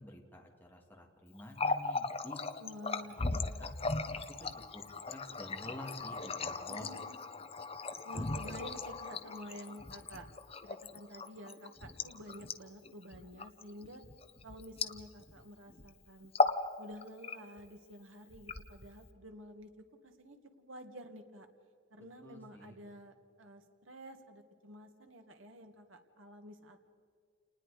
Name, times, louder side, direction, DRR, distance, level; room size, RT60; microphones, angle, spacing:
voice 1, 0.0-2.4 3.6-3.8 4.1-4.5 4.7-6.9 22.2-22.8, left 1 dB, 10° left, 0 dB, 2.4 m, -49 dB
Water tap faucet, 1.4-15.4 15.7-15.9 16.2-16.7 17.0-17.7 18.3-19.1, left 3 dB, 30° left, 0.9 m, -37 dB
voice 2, 2.6-3.6 6.7-7.2 8.0-10.3 10.6-14.0 14.4-16.3 16.8-19.7 20.0-21.5 21.9-26.8, equal, 80° right, 6 dB, 2.0 m, -50 dB
29.0 x 20.0 x 5.0 m, 2.2 s
head